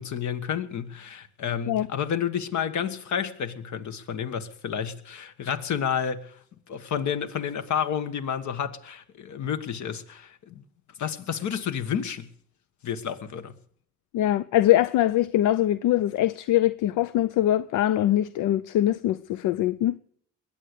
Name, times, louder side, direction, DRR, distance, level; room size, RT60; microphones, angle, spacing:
voice 1, 0.0-10.6 11.0-12.3 12.8-13.5, left 8 dB, 70° left, 1.5 m, -30 dB
voice 2, 14.1-20.0, left 13 dB, 85° left, 0.5 m, -23 dB
21.0 x 8.7 x 6.7 m
cardioid pair, 90°, 30 cm